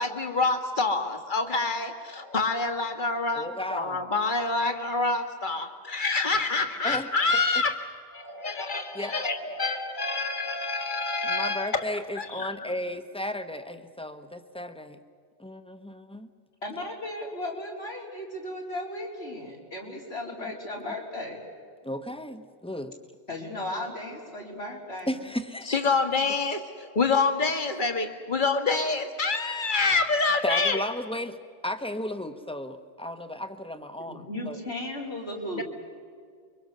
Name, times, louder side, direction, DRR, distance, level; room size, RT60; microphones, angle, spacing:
voice 1, 0.0-7.8 8.1-11.9 12.2-12.5 25.7-30.8 35.5-35.6, left 3 dB, 50° left, 6 dB, 1.9 m, -27 dB
voice 2, 3.3-4.0 6.8-7.1 7.3-7.6 8.9-9.1 11.2-15.0 15.4-16.3 21.8-22.9 25.1-25.8 30.4-31.4 31.6-34.6, left 1 dB, 5° left, 8 dB, 1.1 m, -34 dB
voice 3, 16.6-21.4 23.3-25.1 34.1-35.6, left 1 dB, 90° left, -1 dB, 4.5 m, -35 dB
29.0 x 24.0 x 6.8 m, 2.1 s
omnidirectional pair, 1.1 m